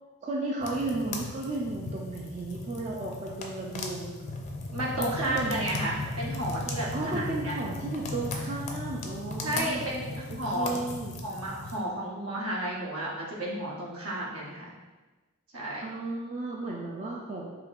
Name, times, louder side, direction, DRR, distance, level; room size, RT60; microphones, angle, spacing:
voice 1, 0.2-4.4 5.0-5.7 6.9-9.9 10.3-11.1 15.8-17.5, right 2 dB, 30° right, -2 dB, 0.3 m, -34 dB
sound 1, 0.6-11.8, left 2 dB, 30° left, 0.4 m, -37 dB
voice 2, 4.7-7.5 9.4-10.8 11.2-14.7 15.5-15.9, right 1 dB, 70° right, -4 dB, 1.0 m, -32 dB
4.9 x 2.9 x 2.4 m, 1.2 s
head